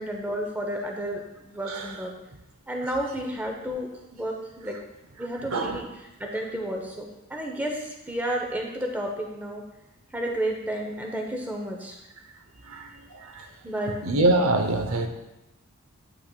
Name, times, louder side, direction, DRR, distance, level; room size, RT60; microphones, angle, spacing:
voice 1, 0.0-2.1 2.7-4.8 5.2-9.6 10.1-12.0 13.6-14.0, right 1 dB, 10° right, 1 dB, 0.6 m, -31 dB
voice 2, 12.7-13.5 14.0-15.1, right 2 dB, 75° right, 5 dB, 0.7 m, -24 dB
8.4 x 5.8 x 2.2 m, 0.95 s
head